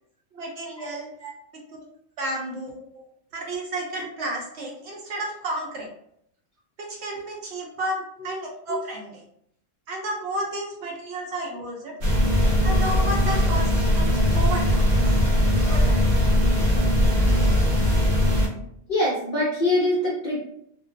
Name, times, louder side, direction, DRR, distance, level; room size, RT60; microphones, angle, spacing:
voice 1, 0.3-1.1 1.7-1.8 2.2-2.8 3.3-5.9 6.8-9.2 9.9-12.0 12.6-15.2 15.6-16.0, right 1 dB, 65° right, -2 dB, 0.7 m, -32 dB
sound 1, 12.0-18.5, equal, 85° right, 1.1 m, -20 dB
voice 2, 18.9-20.4, left 1 dB, 60° left, -6 dB, 0.5 m, -24 dB
2.2 x 2.2 x 2.4 m, 0.71 s
omnidirectional pair, 1.4 m